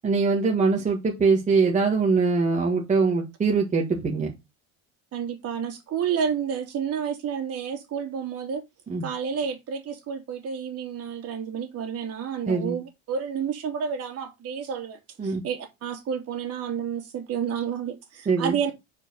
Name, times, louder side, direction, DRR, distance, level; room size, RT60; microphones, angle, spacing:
voice 1, 0.0-4.3 8.9-9.0 12.5-12.8 15.2-15.4 18.2-18.6, right 4 dB, 20° right, 1.6 m, -22 dB
voice 2, 5.1-8.6 9.0-18.7, right 7 dB, 45° right, 2.8 m, -30 dB
4.9 x 4.8 x 6.2 m
cardioid pair, 130°, 34 cm